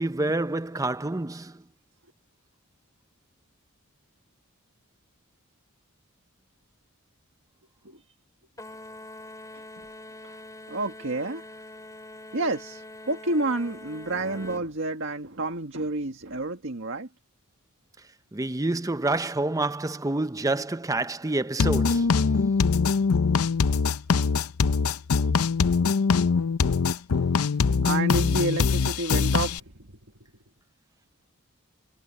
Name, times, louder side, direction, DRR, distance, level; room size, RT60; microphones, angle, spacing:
voice 1, 0.0-1.6 18.3-22.2, right 2 dB, 15° right, 0.6 m, -28 dB
sound 1, 8.6-14.7, left 2 dB, 15° left, 3.1 m, -44 dB
voice 2, 10.7-11.5 12.3-17.1 27.8-29.7, right 2 dB, 60° right, 1.8 m, -29 dB
sound 2, 21.6-29.6, left 5 dB, 80° left, 0.6 m, -23 dB
head